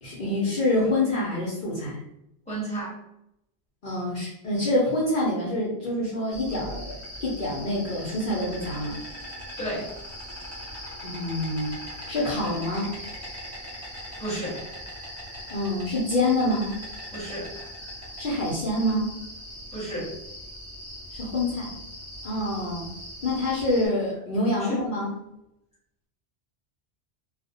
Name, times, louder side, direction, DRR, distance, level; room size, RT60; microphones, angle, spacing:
voice 1, 0.0-2.0 3.8-6.9 7.2-9.0 11.0-11.7 12.1-12.9 15.5-16.8 18.2-19.1 21.1-21.7 22.2-22.8 23.2-25.1, left 1 dB, 55° left, -6 dB, 0.8 m, -26 dB
voice 2, 2.5-2.9 9.6-9.9 14.2-14.6 17.1-18.1 19.7-20.1 24.6-24.9, right 1 dB, 5° left, -8 dB, 1.0 m, -33 dB
Insect, 6.3-23.9, equal, 15° right, 0.7 m, -40 dB
2.4 x 2.0 x 2.7 m, 0.81 s
omnidirectional pair, 1.2 m